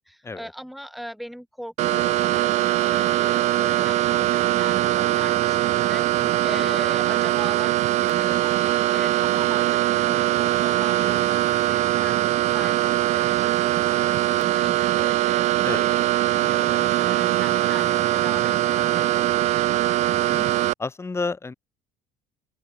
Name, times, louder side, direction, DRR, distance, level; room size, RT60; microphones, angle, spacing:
voice 1, 0.0-16.1 16.3-19.6, equal, ahead, 3.8 m, -40 dB
sound 1, 1.8-20.7, right 15 dB, 55° right, 0.5 m, -22 dB
voice 2, 20.1-20.4 20.8-21.5, left 3 dB, 20° left, 4.9 m, -31 dB
open air
cardioid pair, 115°, 14 cm